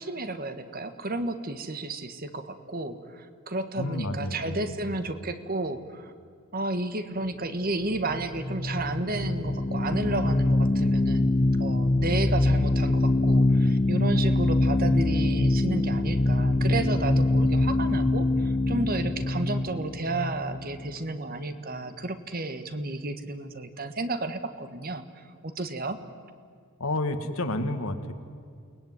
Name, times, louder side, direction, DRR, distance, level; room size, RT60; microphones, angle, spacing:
voice 1, 0.0-6.1 6.5-11.3 11.6-26.0, right 2 dB, 45° right, 10 dB, 1.5 m, -32 dB
voice 2, 3.8-5.0 26.8-28.1, left 2 dB, 80° left, 7 dB, 2.1 m, -30 dB
sound 1, 7.9-21.2, left 2 dB, 25° left, 0.6 m, -24 dB
29.0 x 20.0 x 9.6 m, 2.2 s
head